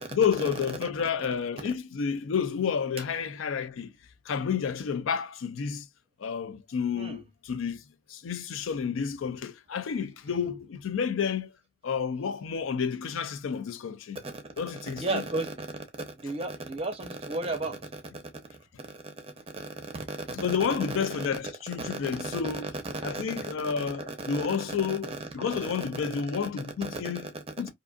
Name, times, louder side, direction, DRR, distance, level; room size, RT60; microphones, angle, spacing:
voice 1, 0.1-3.9 4.3-5.9 6.2-7.8 8.1-11.5 11.8-14.2 14.6-15.2 20.3-22.7 23.0-27.3 27.6-27.7, left 6 dB, 85° left, 0.4 m, -30 dB
voice 2, 15.0-15.8 16.1-18.3 18.9-21.3 21.9-22.0 22.3-22.7 23.0-25.2 25.5-25.6 26.8-27.4, right 2 dB, 30° right, 0.6 m, -35 dB
2.6 x 2.4 x 2.3 m
head